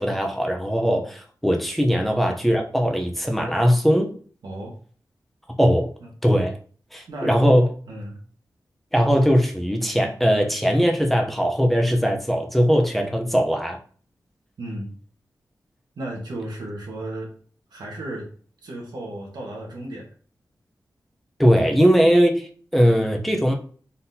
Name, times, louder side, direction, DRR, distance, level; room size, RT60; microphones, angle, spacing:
voice 1, 0.0-4.1 5.6-5.9 6.2-6.5 6.9-7.7 8.9-13.8 21.4-23.6, equal, ahead, 2 dB, 0.6 m, -20 dB
voice 2, 4.4-4.7 6.0-6.1 7.1-7.4 7.9-8.2 14.6-14.9 15.9-17.3 17.7-18.3 18.6-20.1, right 1 dB, 90° right, -1 dB, 1.4 m, -34 dB
4.1 x 3.7 x 2.7 m, 0.44 s
wide cardioid pair, 105°, 7 cm